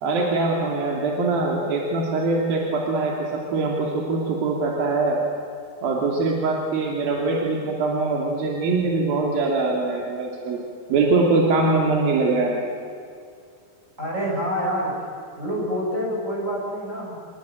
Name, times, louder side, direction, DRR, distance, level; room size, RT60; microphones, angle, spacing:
voice 1, 0.0-5.2 5.8-10.6 10.9-12.6, right 3 dB, 75° right, 0 dB, 4.5 m, -23 dB
voice 2, 14.0-14.9 15.4-17.3, equal, 20° right, -4 dB, 7.4 m, -27 dB
28.0 x 22.0 x 9.1 m, 2.3 s
omnidirectional pair, 4.3 m